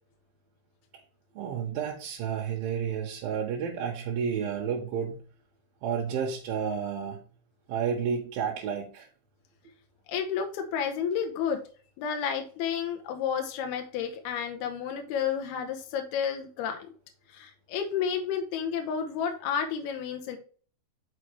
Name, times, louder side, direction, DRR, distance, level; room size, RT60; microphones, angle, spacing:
voice 1, 1.4-5.2 5.8-7.2 7.7-9.1, right 7 dB, 75° right, -2 dB, 2.6 m, -31 dB
voice 2, 10.1-11.6 12.0-16.8 17.3-20.4, left 7 dB, 80° left, 5 dB, 2.8 m, -31 dB
6.2 x 5.6 x 3.3 m, 0.41 s
omnidirectional pair, 4.6 m